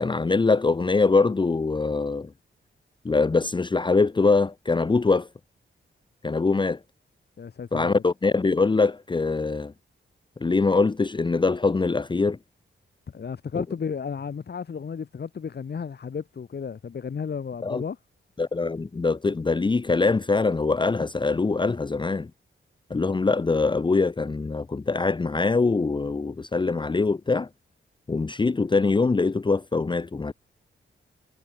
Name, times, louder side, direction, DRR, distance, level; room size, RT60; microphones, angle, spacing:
voice 1, 0.0-2.3 3.0-5.3 6.2-6.8 7.7-9.7 10.4-12.4 13.6-13.7 17.6-17.8 18.4-22.3 22.9-27.5 28.1-30.3, left 3 dB, 20° left, 1.0 m, -23 dB
voice 2, 7.4-8.0 13.1-18.0, left 6 dB, 55° left, 5.9 m, -33 dB
wide cardioid pair, 160°, 21 cm